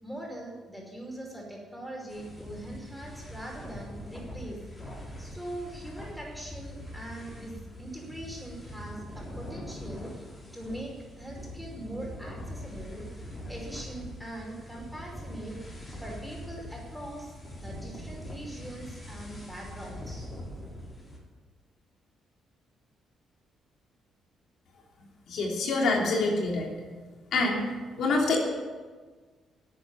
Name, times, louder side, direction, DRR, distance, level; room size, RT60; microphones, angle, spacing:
voice 1, 0.0-4.6 5.2-10.1 10.5-13.0 13.5-15.6 16.0-20.3, right 1 dB, ahead, -1 dB, 5.2 m, -42 dB
sound 1, 2.1-21.2, left 1 dB, 20° left, 4.9 m, -43 dB
voice 2, 25.3-26.8 27.3-27.7 28.0-28.4, left 3 dB, 70° left, -1 dB, 3.1 m, -26 dB
13.0 x 8.8 x 9.8 m, 1.4 s
cardioid pair, 90°, 0 cm